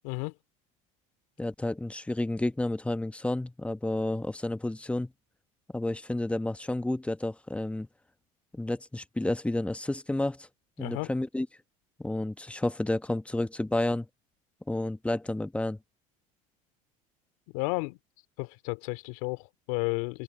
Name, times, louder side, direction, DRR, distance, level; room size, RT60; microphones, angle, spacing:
voice 1, 1.4-5.1 5.7-7.9 8.5-10.5 10.8-11.5 12.0-14.1 14.7-15.8, left 1 dB, 5° left, 1.0 m, -30 dB
voice 2, 10.8-11.1 17.5-18.0 18.4-20.2, left 27 dB, 75° left, 2.7 m, -32 dB
open air
supercardioid pair, 90°, 18 cm